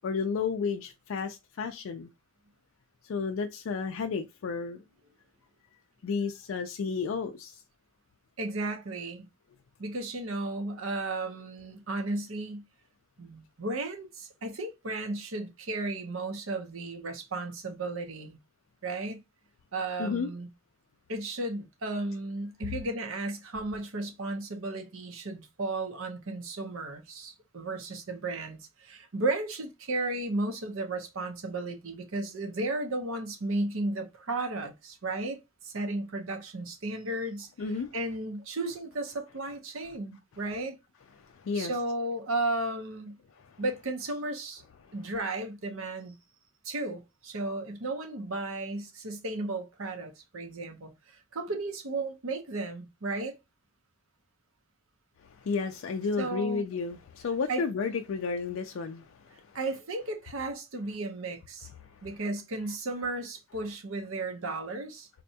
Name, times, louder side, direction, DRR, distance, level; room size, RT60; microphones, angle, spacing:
voice 1, 0.0-2.1 3.0-4.8 6.0-7.6 20.0-20.3 37.6-37.9 41.2-41.7 43.4-43.6 44.8-44.9 55.2-59.6 61.8-62.1, left 5 dB, 65° left, 0.3 m, -32 dB
voice 2, 8.4-9.3 9.8-12.6 13.2-18.4 18.8-19.2 19.7-20.5 21.1-35.4 35.6-37.5 37.9-40.8 41.5-43.2 43.6-44.6 44.9-46.1 46.6-50.9 51.3-53.3 56.2-56.6 57.5-57.6 59.5-61.7 62.0-65.1, right 2 dB, 65° right, 0.7 m, -34 dB
4.1 x 2.2 x 2.6 m
head